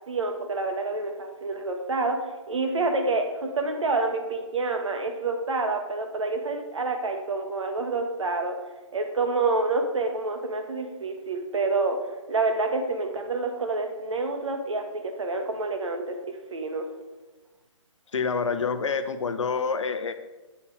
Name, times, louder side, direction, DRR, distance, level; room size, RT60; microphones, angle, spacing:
voice 1, 0.1-8.6 8.9-12.0 12.3-16.9, right 3 dB, 75° right, 4 dB, 1.6 m, -28 dB
voice 2, 18.1-20.1, left 5 dB, 70° left, 10 dB, 0.8 m, -27 dB
8.4 x 5.8 x 4.8 m, 1.2 s
hypercardioid pair, 155°, 16 cm